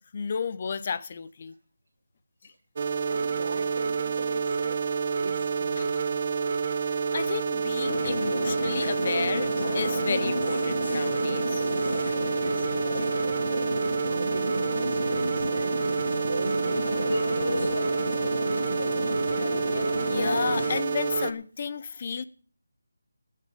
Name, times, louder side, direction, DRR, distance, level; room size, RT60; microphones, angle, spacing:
voice 1, 0.1-1.5 5.8-5.9 6.8-11.7 20.1-22.2, left 6 dB, 30° left, 0.8 m, -32 dB
sound 1, 2.8-21.3, right 5 dB, 35° right, 0.9 m, -28 dB
voice 2, 3.1-6.7 7.2-7.3 12.3-17.9 21.9-22.0, right 2 dB, 70° right, 1.4 m, -40 dB
sound 2, 7.9-20.8, left 2 dB, 80° left, 0.5 m, -32 dB
19.0 x 6.9 x 5.1 m
figure-of-eight pair, 170°, 0 cm